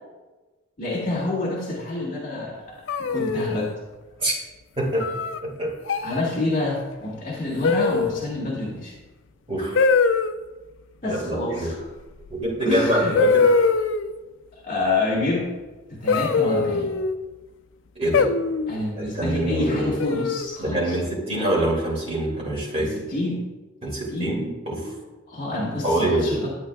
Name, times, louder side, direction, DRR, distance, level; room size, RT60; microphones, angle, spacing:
voice 1, 0.8-2.8 3.1-3.7 6.0-8.9 11.0-11.8 12.6-13.2 14.6-15.5 15.9-16.9 18.7-21.0 22.8-23.4 24.1-24.3 25.3-26.5, left 2 dB, 40° left, -8 dB, 1.7 m, -27 dB
sound 1, 2.9-3.7 5.0-5.4 5.9-6.2 7.6-8.3 9.7-10.3 12.3-12.4 13.1-14.1 16.1-17.2 18.1-18.8 20.0-20.6, left 4 dB, 60° left, 0.4 m, -22 dB
voice 2, 4.8-5.1 5.4-5.7 9.5-9.8 11.0-11.7 12.3-13.5 18.0-18.3 19.0-19.9 20.6-22.9 23.8-24.9 25.8-26.4, right 1 dB, 30° right, -4 dB, 2.5 m, -25 dB
11.5 x 8.4 x 2.3 m, 1.2 s
head